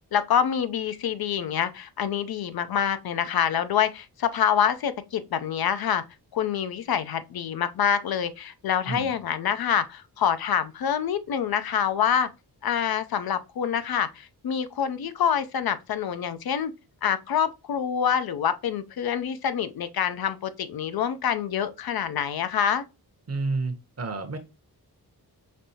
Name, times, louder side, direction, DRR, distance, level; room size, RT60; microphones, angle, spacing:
voice 1, 0.1-6.0 6.3-12.3 12.6-16.7 17.0-22.8, left 8 dB, 65° left, 0.5 m, -26 dB
voice 2, 23.3-24.4, right 3 dB, 40° right, 0.8 m, -30 dB
5.2 x 2.6 x 2.7 m
wide cardioid pair, 125°, 39 cm